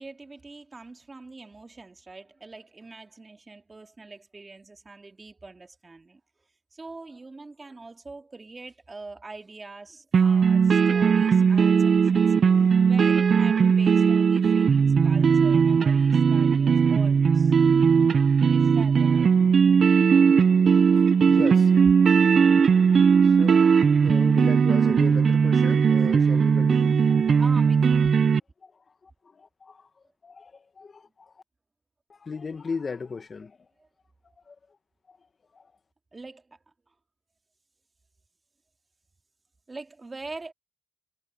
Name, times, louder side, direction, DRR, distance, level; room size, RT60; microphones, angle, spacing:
voice 1, 0.0-6.2 6.7-12.3 12.8-17.5 18.5-19.3 27.3-28.1 33.8-33.9 36.1-36.6 39.7-40.5, right 3 dB, 25° right, 2.3 m, -43 dB
sound 1, 10.1-28.4, right 6 dB, 45° right, 0.6 m, -19 dB
voice 2, 21.0-21.7 22.3-27.2 28.6-28.7 29.0-29.9 30.2-31.4 32.1-33.6 34.5-34.6 35.1-35.2 35.5-35.7, left 5 dB, 35° left, 1.8 m, -37 dB
cardioid pair, 90°, 0 cm